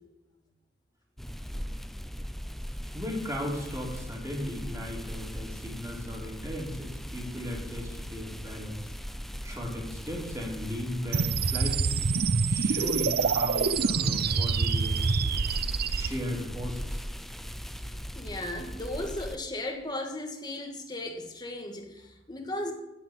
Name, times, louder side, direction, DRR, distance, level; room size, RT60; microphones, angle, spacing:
sound 1, 1.2-19.4, equal, ahead, 0.5 m, -39 dB
voice 1, 2.9-8.8 9.4-12.0 12.5-15.4 15.9-17.0, equal, 15° right, -2 dB, 3.4 m, -36 dB
sound 2, 11.1-16.1, right 5 dB, 55° right, 0.6 m, -26 dB
voice 2, 17.6-22.7, left 1 dB, 20° left, 3 dB, 1.9 m, -36 dB
11.5 x 5.8 x 9.0 m, 0.98 s
head